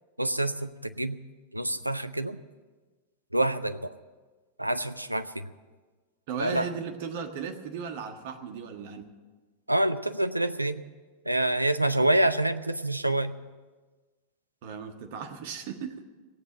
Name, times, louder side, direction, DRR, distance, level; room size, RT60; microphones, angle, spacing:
voice 1, 0.2-1.2 1.5-2.4 3.3-3.9 4.6-5.5 6.4-6.7 9.7-10.8 11.3-13.4, right 1 dB, 85° right, 11 dB, 0.6 m, -27 dB
voice 2, 6.3-9.1 14.6-16.0, right 6 dB, 50° right, 6 dB, 1.5 m, -36 dB
17.5 x 8.1 x 8.9 m, 1.3 s
figure-of-eight pair, 90°, 0 cm